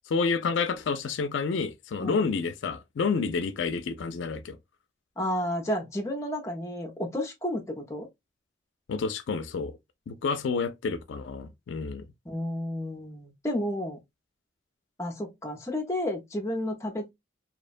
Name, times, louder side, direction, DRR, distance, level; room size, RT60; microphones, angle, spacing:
voice 1, 0.1-4.6 8.9-9.7 10.1-12.0, left 5 dB, 80° left, 0.4 m, -29 dB
voice 2, 5.2-8.1 12.3-14.0 15.0-17.1, left 1 dB, 15° left, 0.5 m, -31 dB
2.9 x 2.1 x 2.4 m
head